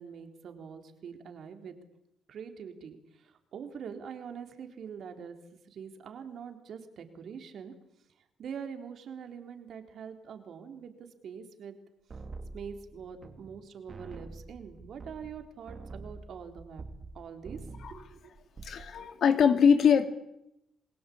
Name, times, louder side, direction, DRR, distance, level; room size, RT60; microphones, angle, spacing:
voice 1, 0.0-1.8 2.3-5.4 5.7-7.7 8.4-11.8 12.5-16.8 17.1-17.6 17.9-18.3, right 7 dB, 65° right, 6 dB, 3.8 m, -44 dB
metallic bass, 12.1-13.6 13.9-17.2 17.4-18.0 18.4-18.9, right 3 dB, 45° right, 3.4 m, -45 dB
voice 2, 18.6-20.0, left 7 dB, 65° left, 8 dB, 2.6 m, -22 dB
28.5 x 20.0 x 8.7 m, 0.82 s
cardioid pair, 70°, 0 cm